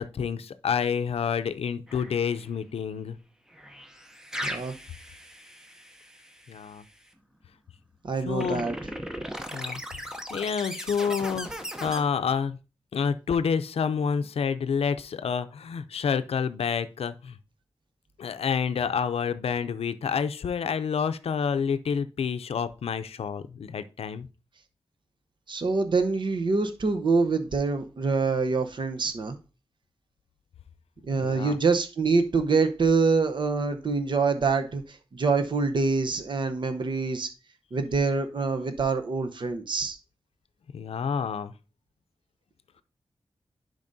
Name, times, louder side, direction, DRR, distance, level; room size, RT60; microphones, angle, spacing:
voice 1, 0.0-3.2 4.4-4.5 6.5-6.8 8.2-8.6 9.5-9.8 10.3-12.6 12.9-17.4 18.2-24.3 31.2-31.6 40.7-41.5, left 6 dB, 85° left, 0.5 m, -28 dB
sound 1, 1.9-2.5 3.5-6.7 8.4-12.0, equal, 5° right, 0.7 m, -38 dB
voice 2, 4.4-4.7 8.0-8.8 25.5-29.4 31.1-37.3 37.7-40.0, right 4 dB, 55° right, 0.8 m, -25 dB
11.0 x 5.2 x 2.7 m
wide cardioid pair, 140°, 10 cm